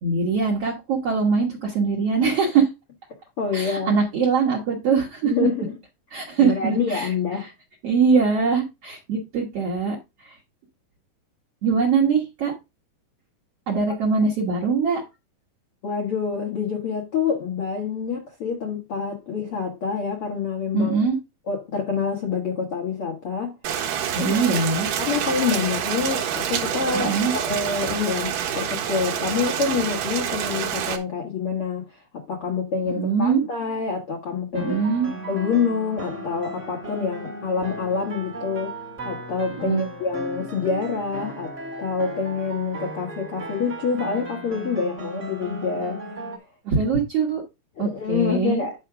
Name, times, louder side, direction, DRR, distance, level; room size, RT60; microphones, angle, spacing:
voice 1, 0.0-2.7 3.5-5.3 6.1-7.1 7.4-7.5 7.8-10.0 11.6-12.5 13.7-15.0 20.7-21.2 24.1-24.9 26.9-27.3 32.9-33.4 34.5-35.1 39.6-39.9 46.6-47.4 47.8-48.6, right 5 dB, 85° right, 1.3 m, -22 dB
voice 2, 3.4-4.0 5.2-5.7 6.4-7.5 15.8-21.0 21.5-23.5 24.2-24.4 25.0-31.9 32.1-34.8 35.3-38.7 39.0-41.5 41.8-46.1 47.7-48.7, left 5 dB, 75° left, 1.3 m, -27 dB
Rain, 23.6-31.0, right 9 dB, 65° right, 2.4 m, -27 dB
sound 1, 34.5-46.4, right 1 dB, 20° right, 2.1 m, -36 dB
10.0 x 3.6 x 6.0 m
omnidirectional pair, 5.1 m